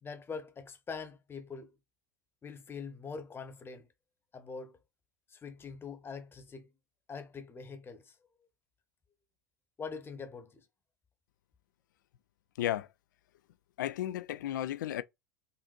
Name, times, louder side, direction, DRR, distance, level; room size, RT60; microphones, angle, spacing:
voice 1, 0.0-1.7 2.4-3.9 4.3-4.7 5.3-6.7 7.1-8.1 9.8-10.6, left 5 dB, 20° left, 0.9 m, -43 dB
voice 2, 12.6-12.9 13.8-15.0, left 12 dB, 75° left, 0.4 m, -33 dB
5.3 x 2.6 x 2.4 m
hypercardioid pair, 85°, 10 cm